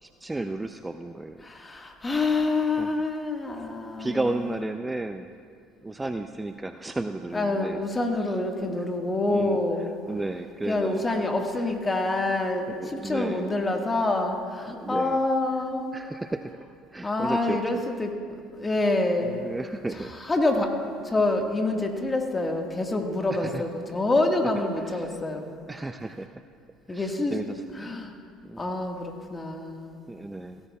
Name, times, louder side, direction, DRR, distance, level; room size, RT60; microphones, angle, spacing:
voice 1, 0.0-1.4 2.8-3.4 4.0-5.3 5.8-7.8 8.2-8.3 9.3-9.6 10.1-11.2 12.7-13.5 14.7-15.2 15.9-16.6 16.9-17.8 19.2-20.1 23.3-23.6 23.9-24.0 24.8-25.2 25.7-26.4 26.9-27.6 28.4-28.6 30.1-30.6, right 2 dB, 15° right, 8 dB, 0.4 m, -33 dB
voice 2, 1.4-4.7 7.3-9.9 10.6-15.9 17.0-18.1 18.5-19.4 19.9-20.7 21.0-25.5 26.9-27.4 27.7-28.1 28.6-29.9, left 2 dB, 20° left, 3 dB, 1.6 m, -27 dB
17.0 x 13.5 x 2.3 m, 2.3 s
hypercardioid pair, 70°, 0 cm